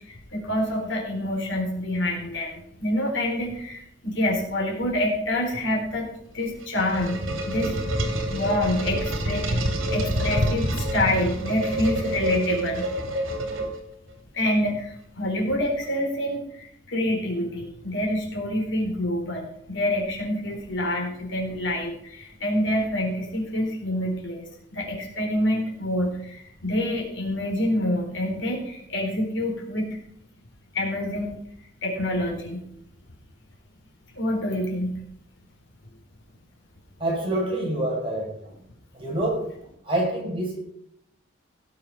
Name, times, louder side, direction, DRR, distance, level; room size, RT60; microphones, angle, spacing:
voice 1, 0.0-6.1 6.3-12.9 14.3-24.4 24.7-29.9 30.7-31.3 31.8-32.6 34.2-35.0, left 1 dB, 70° left, -1 dB, 4.1 m, -27 dB
sound 1, 6.4-14.1, right 1 dB, 85° right, 2.4 m, -27 dB
voice 2, 37.0-38.3 38.9-39.4 39.8-40.6, right 1 dB, 25° right, -2 dB, 5.5 m, -26 dB
17.0 x 7.1 x 5.8 m, 0.73 s
head